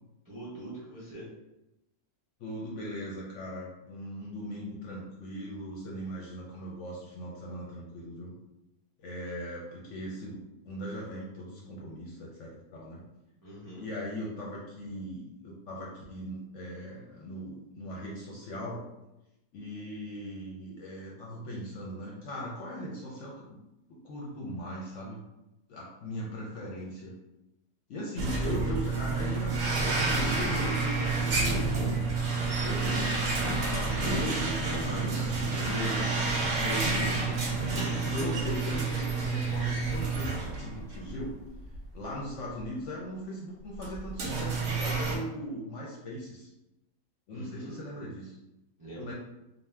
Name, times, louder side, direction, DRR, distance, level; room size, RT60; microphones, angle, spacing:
voice 1, 0.2-1.3 13.4-13.8 47.3-47.7 48.8-49.1, right 1 dB, 20° right, -7 dB, 0.6 m, -43 dB
voice 2, 2.4-8.3 9.0-10.4 10.6-13.0 13.8-18.8 19.5-23.6 23.9-25.2 25.7-27.1 27.9-31.9 32.6-36.1 36.6-37.7 38.1-41.4 41.9-46.5 47.3-48.4 49.0-49.1, equal, 65° left, -4 dB, 0.8 m, -39 dB
sound 1, 28.2-41.2 41.6-41.8 42.6-42.7 43.7-45.2, right 3 dB, 60° right, 0.8 m, -29 dB
2.6 x 2.1 x 3.3 m, 0.93 s
omnidirectional pair, 1.6 m